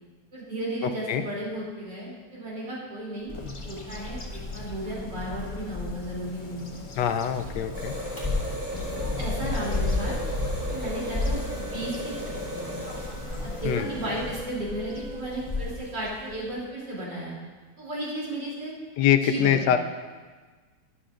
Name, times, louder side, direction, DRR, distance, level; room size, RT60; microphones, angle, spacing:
voice 1, 0.3-3.4 3.6-6.7 7.6-7.7 9.0-10.2 10.7-12.7 13.4-17.3 17.8-18.7 19.2-19.8, right 1 dB, 85° right, -6 dB, 3.8 m, -34 dB
voice 2, 0.8-1.2 7.0-7.9 13.6-13.9 19.0-19.8, left 10 dB, 75° left, 8 dB, 1.2 m, -24 dB
Bird vocalization bird call bird song, 3.3-16.6, left 2 dB, 25° left, 0.7 m, -34 dB
sound 1, 7.7-13.8, equal, 10° right, 1.9 m, -36 dB
Wind instrument woodwind instrument, 10.0-15.5, right 4 dB, 65° right, 1.0 m, -44 dB
12.0 x 11.0 x 2.5 m, 1.4 s
omnidirectional pair, 1.9 m